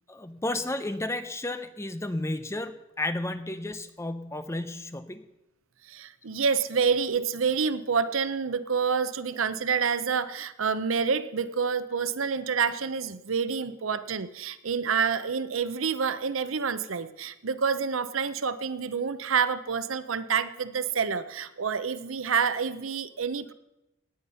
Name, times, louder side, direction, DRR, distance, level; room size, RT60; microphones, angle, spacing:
voice 1, 0.1-5.2, left 2 dB, 15° left, 10 dB, 0.7 m, -32 dB
voice 2, 5.9-23.5, right 6 dB, 80° right, 13 dB, 0.7 m, -28 dB
17.5 x 9.4 x 5.6 m, 0.92 s
head